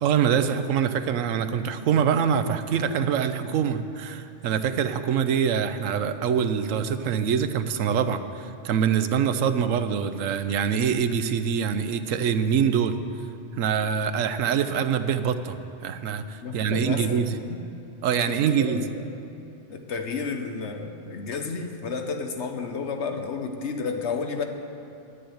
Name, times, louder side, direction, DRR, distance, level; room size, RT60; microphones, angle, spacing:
voice 1, 0.0-13.0 13.6-15.6 15.8-17.3 18.0-18.8, right 7 dB, 90° right, 10 dB, 1.1 m, -24 dB
voice 2, 16.4-17.6 18.2-19.1 19.7-24.4, left 5 dB, 65° left, 5 dB, 1.1 m, -32 dB
10.0 x 9.9 x 7.8 m, 2.8 s
omnidirectional pair, 1.3 m